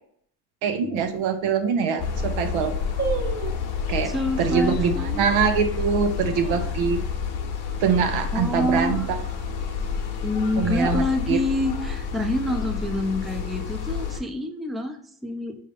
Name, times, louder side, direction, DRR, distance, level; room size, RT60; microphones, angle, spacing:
voice 1, 0.6-2.7 3.9-4.1 4.4-7.0 7.8-9.0 10.5-11.4, right 6 dB, 80° right, 7 dB, 0.8 m, -23 dB
sound 1, 1.0-1.1 1.7-1.8 2.0-2.4 3.0-3.7 4.5-4.9 5.4-5.5 6.0-7.2 7.5-7.6 7.9-8.3 8.7-9.0 9.7-10.4 10.7-10.8, right 6 dB, 35° right, 1.5 m, -33 dB
sound 2, 2.0-14.2, left 6 dB, 55° left, 0.9 m, -29 dB
voice 2, 4.0-5.3 8.3-9.1 10.2-15.6, left 1 dB, ahead, 3 dB, 0.5 m, -27 dB
5.2 x 2.7 x 3.3 m, 0.63 s
supercardioid pair, 80°, 47 cm